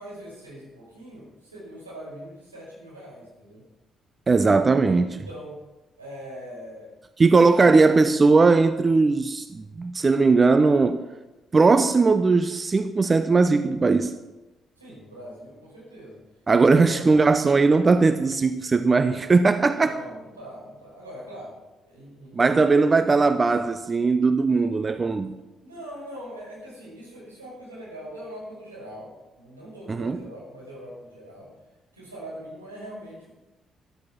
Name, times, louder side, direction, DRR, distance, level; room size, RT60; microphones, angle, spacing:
voice 1, 0.0-3.6 5.1-5.6 6.0-6.9 14.8-16.2 16.6-17.2 19.6-21.5 21.8-22.6 25.6-31.5 31.9-33.3, equal, 90° right, 5.5 m, -42 dB
voice 2, 4.3-5.2 7.2-11.0 11.5-14.1 16.5-20.0 22.3-25.3 29.9-30.2, right 4 dB, 30° right, 0.8 m, -19 dB
13.5 x 12.5 x 6.0 m
figure-of-eight pair, 45°, 0 cm